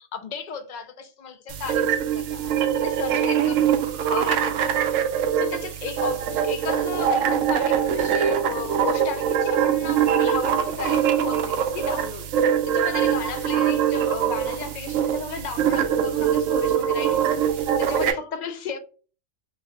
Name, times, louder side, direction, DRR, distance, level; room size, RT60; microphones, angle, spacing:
voice 1, 0.0-3.7 4.1-5.0 5.4-18.8, left 6 dB, 80° left, 0.4 m, -34 dB
sound 1, 1.5-18.1, right 8 dB, 85° right, 1.0 m, -23 dB
3.0 x 2.7 x 3.5 m
omnidirectional pair, 1.3 m